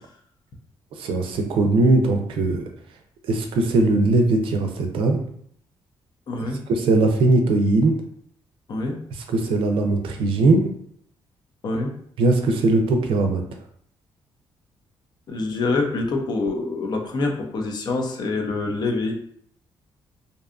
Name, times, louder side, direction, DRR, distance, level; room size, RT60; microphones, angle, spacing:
voice 1, 1.0-2.6 3.2-5.2 6.7-7.9 9.3-10.7 12.2-13.4, right 2 dB, 80° right, 4 dB, 0.4 m, -19 dB
voice 2, 6.3-6.6 8.7-9.0 11.6-11.9 15.3-19.1, left 3 dB, 50° left, 2 dB, 0.5 m, -25 dB
2.6 x 2.3 x 2.4 m, 0.63 s
cardioid pair, 115°, 9 cm